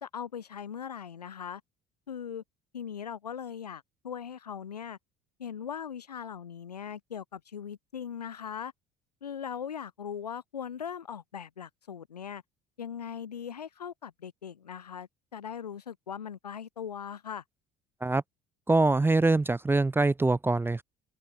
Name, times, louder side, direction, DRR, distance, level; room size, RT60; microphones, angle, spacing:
voice 1, 0.0-1.6 2.1-2.4 2.7-5.0 5.4-8.7 9.2-12.4 12.8-17.4, left 8 dB, 85° left, 1.8 m, -39 dB
voice 2, 18.7-20.8, right 2 dB, 10° right, 0.6 m, -24 dB
figure-of-eight pair, 60°, 20 cm